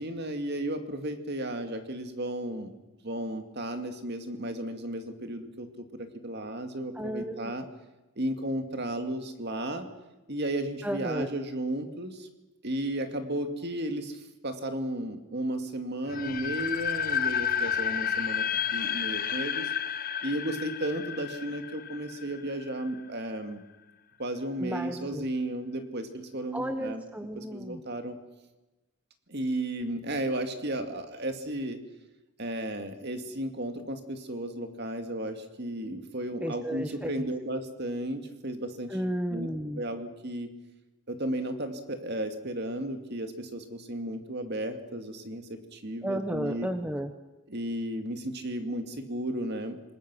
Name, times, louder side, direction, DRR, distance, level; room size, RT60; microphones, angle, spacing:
voice 1, 0.0-2.7 3.0-5.7 6.2-7.6 8.2-9.9 10.3-12.1 12.6-14.1 14.4-18.4 18.7-19.6 20.2-23.6 24.2-27.0 27.4-28.1 29.3-31.8 32.4-38.9 39.3-39.5 39.8-40.5 41.1-45.4 45.8-46.7 47.5-48.2 48.4-49.8, right 1 dB, 45° right, 6 dB, 2.3 m, -34 dB
voice 2, 6.9-7.5 10.8-11.3 24.6-25.3 26.5-27.8 36.4-37.3 38.9-39.8 46.0-47.1, right 1 dB, 5° right, 7 dB, 1.0 m, -33 dB
sound 1, 16.1-23.0, left 8 dB, 40° left, 0.8 m, -31 dB
27.0 x 21.0 x 6.3 m, 1.1 s
head